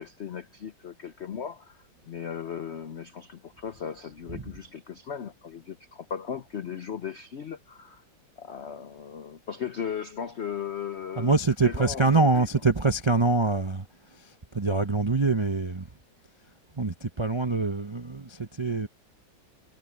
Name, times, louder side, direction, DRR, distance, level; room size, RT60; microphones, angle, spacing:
voice 1, 0.0-8.0 8.4-11.3 11.6-12.4, left 8 dB, 90° left, 0.5 m, -37 dB
voice 2, 11.2-15.9 16.7-18.9, right 3 dB, 45° right, 0.3 m, -25 dB
omnidirectional pair, 2.2 m